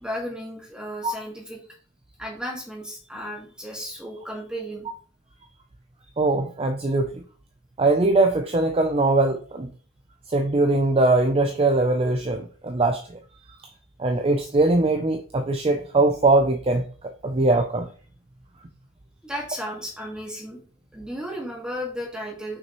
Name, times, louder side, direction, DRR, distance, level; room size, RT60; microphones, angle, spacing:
voice 1, 0.0-1.6 2.2-4.9 19.2-20.6 20.9-22.6, equal, 5° right, -1 dB, 1.6 m, -34 dB
voice 2, 6.2-7.1 7.8-9.7 10.3-13.0 14.0-17.9, right 2 dB, 25° right, 6 dB, 0.4 m, -21 dB
6.0 x 5.6 x 3.0 m, 0.42 s
head